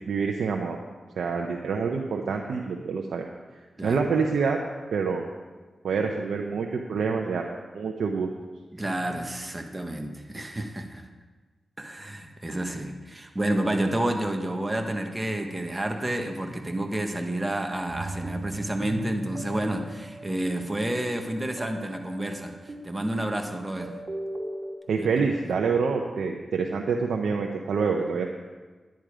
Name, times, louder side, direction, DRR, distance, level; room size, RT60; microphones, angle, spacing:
voice 1, 0.1-0.8 1.2-3.3 3.8-4.6 4.9-5.2 5.8-7.5 7.7-8.3 24.9-28.3, right 5 dB, 85° right, 1 dB, 0.8 m, -26 dB
voice 2, 8.7-11.0 11.8-23.9 25.0-25.1, right 1 dB, 20° right, 4 dB, 1.6 m, -30 dB
sound 1, 17.9-24.8, right 1 dB, 45° right, 2.5 m, -39 dB
10.5 x 10.5 x 4.9 m, 1.3 s
cardioid pair, 55°, 0 cm